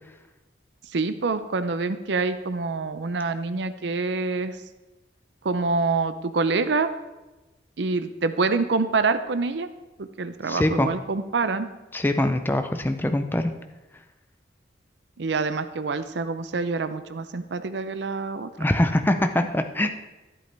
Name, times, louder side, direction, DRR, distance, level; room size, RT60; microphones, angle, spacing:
voice 1, 0.9-4.6 5.4-6.9 7.8-9.7 10.0-11.7 15.2-18.5, right 4 dB, 70° right, 11 dB, 0.6 m, -26 dB
voice 2, 10.5-10.9 11.9-13.5 18.6-19.9, left 1 dB, 10° left, 7 dB, 0.5 m, -23 dB
12.5 x 8.3 x 3.4 m, 1.1 s
head